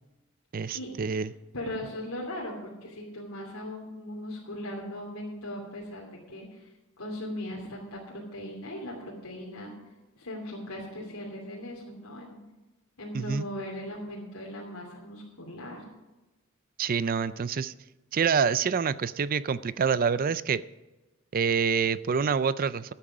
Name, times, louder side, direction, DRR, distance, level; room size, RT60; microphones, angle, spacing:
voice 1, 0.5-1.3 13.1-13.5 16.8-17.7 18.1-20.6 21.3-22.9, right 6 dB, 40° right, 16 dB, 0.4 m, -26 dB
voice 2, 1.5-6.7 7.0-9.7 10.2-12.4 13.0-15.8, left 1 dB, 85° left, -4 dB, 2.9 m, -38 dB
14.0 x 8.8 x 4.9 m, 1.1 s
head